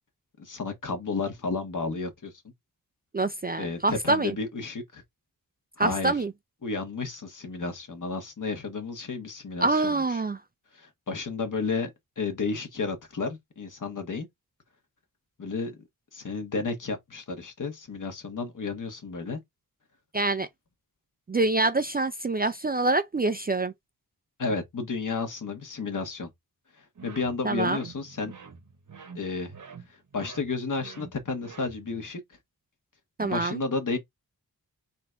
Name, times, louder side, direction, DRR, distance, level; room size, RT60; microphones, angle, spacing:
voice 1, 0.4-2.3 3.6-5.0 5.8-6.1 6.6-10.0 10.7-11.9 12.2-14.3 15.4-15.8 16.1-19.4 24.4-26.3 26.7-28.3 29.1-29.5 29.9-32.2 33.2-34.0, left 4 dB, 55° left, 1.5 m, -32 dB
voice 2, 3.1-4.3 5.8-6.3 9.6-10.4 20.1-20.5 21.3-23.7 27.4-27.8 33.2-33.6, right 2 dB, 25° right, 0.4 m, -25 dB
sound 1, 27.0-32.1, right 6 dB, 55° right, 1.1 m, -47 dB
4.2 x 2.6 x 4.5 m
wide cardioid pair, 110°, 37 cm